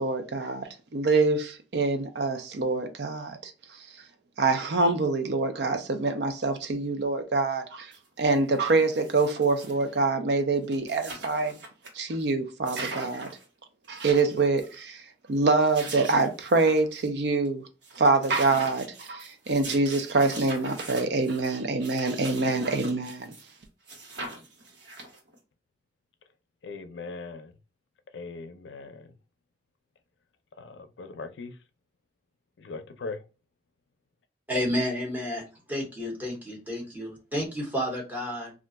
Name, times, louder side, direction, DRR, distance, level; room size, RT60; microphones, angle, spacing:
voice 1, 0.0-3.5 4.4-7.9 8.2-11.6 11.9-13.3 13.9-15.0 15.3-17.6 18.0-23.3, right 3 dB, 65° right, 0.5 m, -25 dB
sound 1, 7.9-8.0 8.3-9.9 10.4-10.5 10.6-11.9 12.2-12.3 12.6-13.4 13.8-14.7 15.4-17.1 17.4-17.5 17.8-23.6 23.9-25.4, right 2 dB, 90° right, 1.1 m, -42 dB
voice 2, 26.6-27.5 28.1-29.1 30.6-31.6 32.6-33.2, left 3 dB, 85° left, 0.5 m, -39 dB
voice 3, 34.5-38.5, equal, 10° right, 1.0 m, -31 dB
2.4 x 2.2 x 3.8 m
head